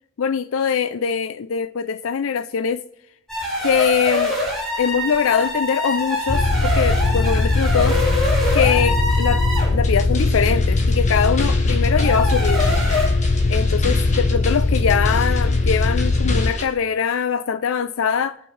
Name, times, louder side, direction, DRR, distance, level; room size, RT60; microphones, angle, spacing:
voice 1, 0.2-2.9 3.6-4.4 4.8-8.0 8.5-9.5 9.7-12.8 13.5-18.4, left 6 dB, 75° left, 0.4 m, -22 dB
sound 1, 3.3-9.8 11.8-13.1, left 1 dB, ahead, 6.9 m, -25 dB
sound 2, 6.3-16.5, left 3 dB, 60° left, 0.9 m, -19 dB
sound 3, 9.8-16.7, left 3 dB, 35° left, 1.9 m, -34 dB
25.5 x 8.8 x 3.3 m
head